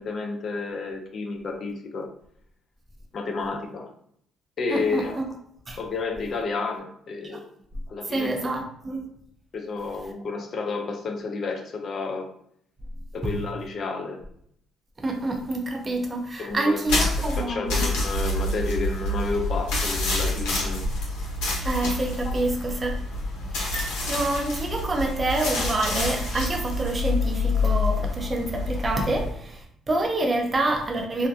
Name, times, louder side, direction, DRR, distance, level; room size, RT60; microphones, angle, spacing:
voice 1, 0.0-2.1 3.1-3.9 4.6-5.2 5.8-7.4 7.9-8.5 9.5-12.3 13.1-14.2 16.4-17.1 17.4-20.8 22.2-22.3, left 4 dB, 55° left, 4 dB, 0.5 m, -31 dB
voice 2, 4.7-5.2 5.7-5.8 8.1-9.0 13.2-13.3 15.0-17.9 21.6-23.0 23.4-31.3, right 2 dB, 35° right, 2 dB, 0.6 m, -27 dB
sound 1, 16.9-29.3, left 2 dB, 85° left, 0.8 m, -27 dB
2.6 x 2.2 x 2.6 m, 0.67 s
supercardioid pair, 70°, 0 cm